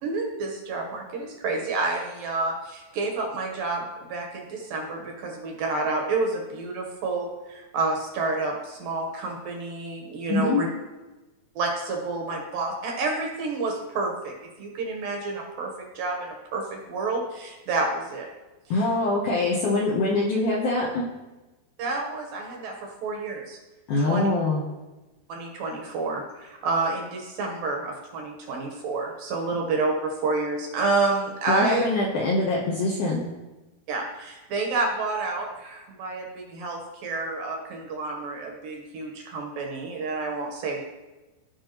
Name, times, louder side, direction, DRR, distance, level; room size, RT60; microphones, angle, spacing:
voice 1, 0.0-10.7 11.6-18.3 21.8-23.6 24.0-24.3 25.3-31.9 33.9-40.8, right 3 dB, 70° right, 1 dB, 2.3 m, -29 dB
voice 2, 10.3-10.6 18.7-21.0 23.9-24.6 31.5-33.3, left 2 dB, 75° left, -3 dB, 1.9 m, -24 dB
16.0 x 5.4 x 2.9 m, 1.1 s
omnidirectional pair, 4.7 m